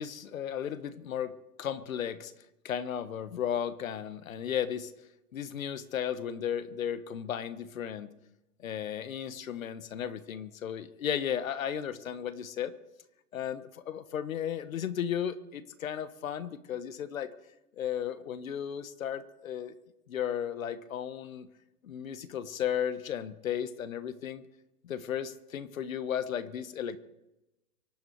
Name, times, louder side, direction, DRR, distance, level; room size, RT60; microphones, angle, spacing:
voice 1, 0.0-2.3 2.6-4.9 5.3-8.1 8.6-12.8 13.3-17.3 17.8-19.7 20.1-21.5 21.8-24.4 24.8-27.0, left 9 dB, 60° left, 13 dB, 1.5 m, -35 dB
24.5 x 9.8 x 4.8 m, 0.93 s
hypercardioid pair, 140°, 45 cm